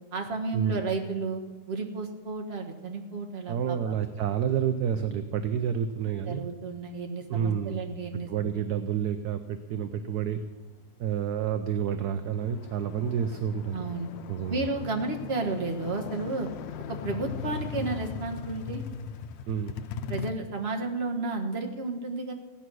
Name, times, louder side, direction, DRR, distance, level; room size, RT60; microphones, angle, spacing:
voice 1, 0.1-1.4 1.7-4.0 6.2-8.3 13.7-14.1 14.5-16.5 16.9-18.8 20.1-22.3, right 3 dB, 35° right, 2 dB, 1.5 m, -32 dB
voice 2, 3.5-6.4 7.3-7.9 8.3-10.4 11.0-13.8 14.3-14.7 19.5-19.8, right 8 dB, 65° right, 9 dB, 1.1 m, -29 dB
sound 1, 11.0-11.1 11.5-20.3, left 7 dB, 80° left, 1.4 m, -39 dB
16.5 x 10.0 x 6.2 m, 1.4 s
omnidirectional pair, 2.0 m